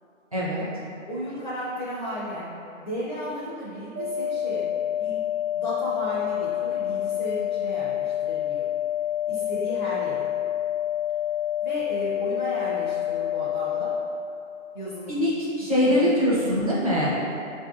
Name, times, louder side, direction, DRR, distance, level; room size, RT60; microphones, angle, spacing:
voice 1, 0.3-0.6 15.1-17.2, left 1 dB, 30° right, -9 dB, 0.5 m, -23 dB
voice 2, 1.1-2.5 2.8-4.7 5.0-5.2 5.5-8.7 9.3-10.3 11.6-13.9 14.7-15.2 15.8-16.2, equal, 35° left, -9 dB, 0.5 m, -34 dB
sound 1, 4.0-14.0, left 11 dB, 80° right, 0.8 m, -28 dB
4.5 x 2.6 x 2.3 m, 2.8 s
hypercardioid pair, 175°, 40 cm